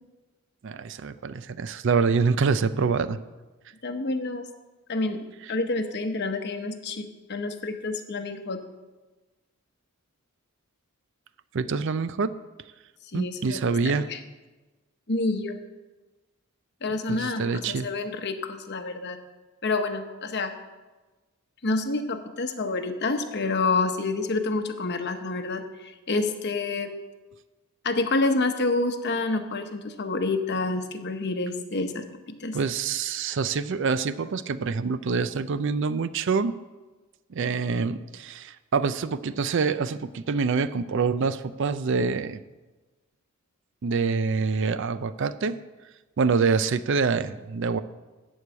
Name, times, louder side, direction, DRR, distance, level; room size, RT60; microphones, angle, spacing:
voice 1, 0.6-3.2 11.5-12.3 13.1-14.1 17.1-17.9 32.5-36.5 37.3-42.4 43.8-45.6 46.2-47.8, right 5 dB, 55° right, 14 dB, 0.4 m, -26 dB
voice 2, 3.8-4.4 4.9-8.6 13.1-14.2 15.1-15.6 16.8-19.2 19.6-20.5 21.6-26.9 27.8-32.6, left 3 dB, 50° left, 7 dB, 0.9 m, -28 dB
13.5 x 4.8 x 8.6 m, 1.2 s
head